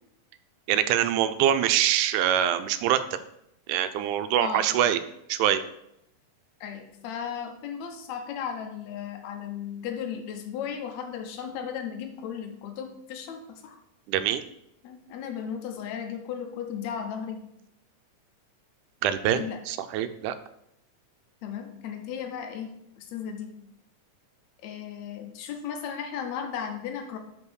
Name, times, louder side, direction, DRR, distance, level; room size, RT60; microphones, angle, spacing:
voice 1, 0.7-3.0 3.7-5.0 5.3-5.6 14.1-14.4 19.0-20.3, right 10 dB, 80° right, 11 dB, 2.0 m, -24 dB
voice 2, 4.4-4.8 6.6-13.8 14.8-17.4 19.3-19.6 21.4-22.7 23.0-23.5 24.6-27.2, left 8 dB, 70° left, 4 dB, 2.0 m, -35 dB
5.4 x 5.1 x 6.2 m, 0.78 s
omnidirectional pair, 3.6 m